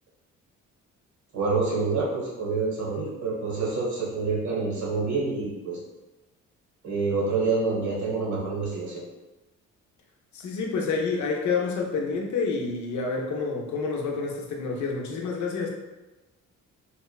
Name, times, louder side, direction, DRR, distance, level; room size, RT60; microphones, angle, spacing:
voice 1, 1.3-5.8 6.8-9.0, right 4 dB, 70° right, -4 dB, 1.1 m, -27 dB
voice 2, 10.3-15.7, left 4 dB, 70° left, 0 dB, 0.6 m, -28 dB
3.0 x 2.1 x 2.3 m, 1.1 s
cardioid pair, 90°, 30 cm